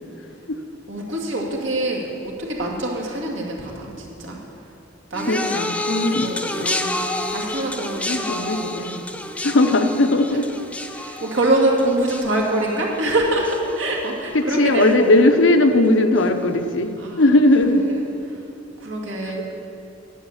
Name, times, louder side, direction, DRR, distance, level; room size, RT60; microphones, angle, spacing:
voice 1, 0.9-4.4 5.1-5.5 6.1-6.7 7.3-9.1 10.1-10.4 10.9-15.1 17.0-17.4 17.7-18.0 18.3-18.4 18.8-19.5, right 1 dB, 75° right, -1 dB, 2.3 m, -25 dB
sound 1, 5.1-14.5 14.8-15.3 16.2-16.3, left 1 dB, 5° left, 0.5 m, -30 dB
voice 2, 5.3-6.3 6.6-7.0 8.1-8.9 9.4-10.5 14.3-17.9 19.3-19.5, left 2 dB, 75° left, 7 dB, 0.8 m, -18 dB
11.0 x 8.2 x 7.2 m, 2.6 s
head